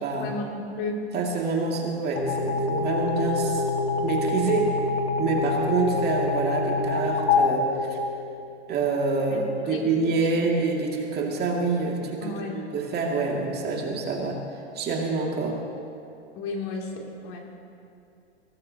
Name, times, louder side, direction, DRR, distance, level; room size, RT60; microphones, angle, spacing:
voice 1, 0.2-1.0 9.3-10.3 12.2-12.6 16.3-17.4, left 3 dB, 40° left, -1 dB, 2.8 m, -34 dB
voice 2, 1.1-3.6 4.0-4.8 5.2-8.0 8.7-12.4 12.7-14.4 14.7-15.6, right 4 dB, 30° right, -1 dB, 2.3 m, -26 dB
sound 1, 2.2-8.6, left 3 dB, 70° left, 1.7 m, -26 dB
22.5 x 17.5 x 2.9 m, 2.6 s
hypercardioid pair, 120°, 34 cm